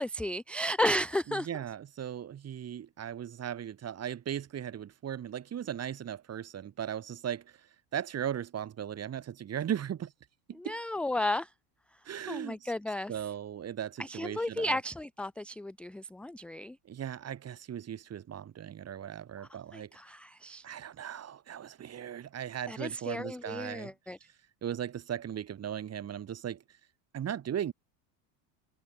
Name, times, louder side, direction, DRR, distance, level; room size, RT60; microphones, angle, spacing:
voice 1, 0.0-1.6 10.5-11.5 12.3-13.1 14.0-16.8 19.4-20.6 22.7-24.2, left 1 dB, ahead, 0.6 m, -33 dB
voice 2, 1.3-7.4 7.9-10.1 10.5-10.8 12.1-12.7 13.1-14.8 16.9-19.9 20.6-23.9 24.6-26.6 27.1-27.7, right 9 dB, 30° right, 2.6 m, -37 dB
supercardioid pair, 120°, 49 cm